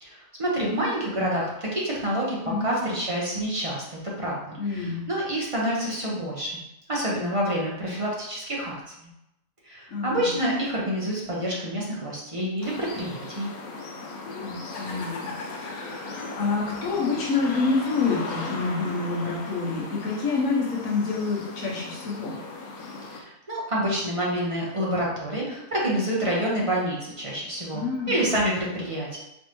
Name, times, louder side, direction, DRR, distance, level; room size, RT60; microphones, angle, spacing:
voice 1, 0.0-6.6 6.9-8.7 9.6-13.5 23.1-29.2, equal, 25° right, -4 dB, 0.9 m, -28 dB
voice 2, 4.6-5.0 9.9-10.3 14.4-15.3 15.6-22.3 27.7-28.2, left 4 dB, 70° left, -3 dB, 1.4 m, -27 dB
sound 1, 12.6-23.2, left 3 dB, 85° left, 1.2 m, -37 dB
4.4 x 3.2 x 3.0 m, 0.86 s
omnidirectional pair, 1.5 m